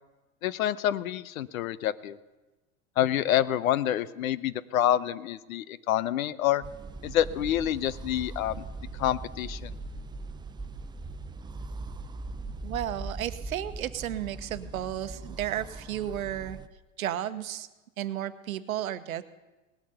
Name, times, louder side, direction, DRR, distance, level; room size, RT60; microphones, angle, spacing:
voice 1, 0.4-2.2 3.0-6.6 7.0-8.6 9.0-9.7, left 12 dB, 80° left, 18 dB, 0.7 m, -27 dB
sound 1, 6.6-16.7, right 3 dB, 10° right, 0.4 m, -40 dB
voice 2, 12.6-16.6 17.0-17.7 18.0-19.2, right 11 dB, 90° right, 12 dB, 1.0 m, -33 dB
18.5 x 8.6 x 6.9 m, 1.1 s
hypercardioid pair, 100°, 41 cm